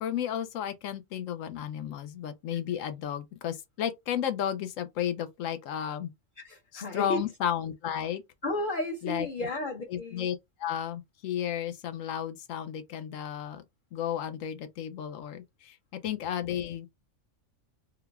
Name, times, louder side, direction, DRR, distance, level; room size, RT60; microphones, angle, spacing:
voice 1, 0.0-6.1 6.7-8.2 9.0-9.3 9.9-13.6 13.9-16.9, left 9 dB, 85° left, 1.0 m, -33 dB
voice 2, 6.4-7.2 8.4-10.3, left 2 dB, 50° left, 0.8 m, -33 dB
3.8 x 2.2 x 3.4 m
omnidirectional pair, 1.3 m